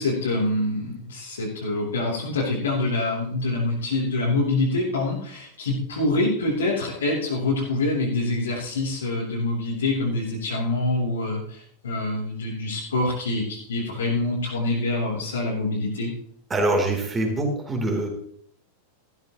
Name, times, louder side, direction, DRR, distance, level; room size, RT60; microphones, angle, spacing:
voice 1, 0.0-16.1, left 2 dB, 70° left, -6 dB, 3.2 m, -25 dB
voice 2, 16.5-18.1, right 2 dB, 15° right, 1 dB, 3.3 m, -24 dB
14.5 x 12.0 x 3.0 m, 0.63 s
figure-of-eight pair, 90°, 0 cm